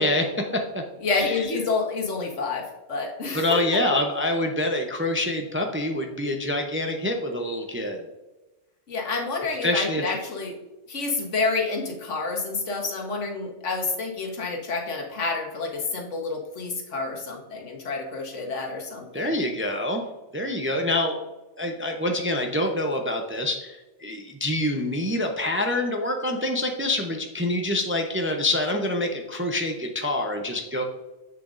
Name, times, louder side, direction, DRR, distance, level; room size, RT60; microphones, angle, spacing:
voice 1, 0.0-0.8 1.1-1.3 3.3-8.0 9.6-10.0 19.1-20.0 20.3-21.2 21.6-30.8, left 1 dB, 15° right, 3 dB, 0.5 m, -26 dB
voice 2, 1.0-3.8 8.9-10.6 10.9-19.4, left 4 dB, 85° left, 1 dB, 1.6 m, -29 dB
7.5 x 6.9 x 2.5 m, 1.1 s
omnidirectional pair, 1.2 m